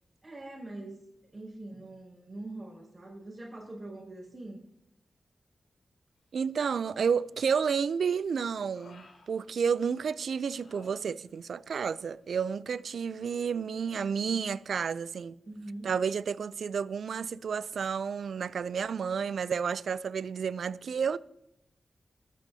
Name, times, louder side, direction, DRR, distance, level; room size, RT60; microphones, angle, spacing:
voice 1, 0.2-1.1 1.3-4.6 15.5-15.9, right 2 dB, 30° right, 5.9 m, -43 dB
voice 2, 6.3-15.4 15.8-21.2, right 6 dB, 80° right, 0.4 m, -31 dB
Human voice, 6.9-7.5 7.9-10.0 10.5-11.6 11.8-12.1, left 3 dB, 80° left, 2.8 m, -57 dB
22.5 x 9.1 x 2.8 m
cardioid pair, 45°, 0 cm